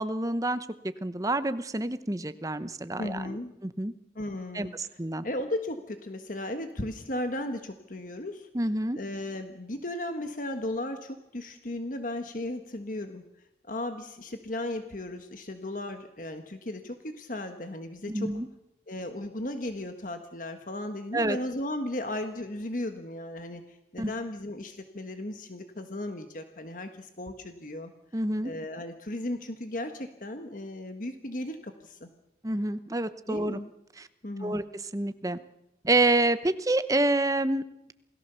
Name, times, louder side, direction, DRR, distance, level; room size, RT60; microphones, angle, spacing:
voice 1, 0.0-3.4 3.6-3.9 4.5-4.7 5.0-5.2 8.5-9.0 18.1-18.5 21.1-21.4 24.0-24.1 28.1-28.5 32.4-33.6 34.0-34.1 34.4-35.4 35.8-37.6, right 2 dB, 20° right, 12 dB, 0.9 m, -28 dB
voice 2, 3.0-3.5 4.1-4.7 5.2-8.5 8.9-13.2 13.6-18.3 18.9-27.9 28.4-32.1 33.3-33.7 34.2-34.6, left 1 dB, 45° left, 7 dB, 1.5 m, -36 dB
28.0 x 18.0 x 6.9 m, 0.89 s
head